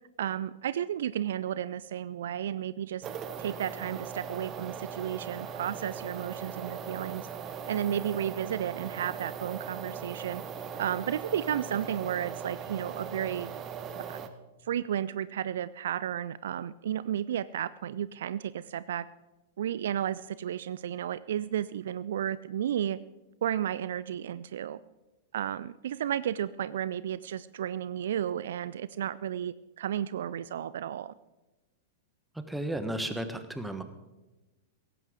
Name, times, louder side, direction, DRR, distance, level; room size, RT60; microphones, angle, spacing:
voice 1, 0.2-3.1 3.4-7.3 7.7-10.4 10.8-13.5 14.0-14.3 14.6-19.0 19.6-23.0 23.4-24.8 25.3-31.1, right 10 dB, 60° right, 17 dB, 0.3 m, -33 dB
sound 1, 3.0-14.3, right 7 dB, 30° right, 1.1 m, -39 dB
voice 2, 32.3-33.8, right 1 dB, 5° right, 9 dB, 1.3 m, -34 dB
17.5 x 15.0 x 3.8 m, 1.1 s
figure-of-eight pair, 95°, 0 cm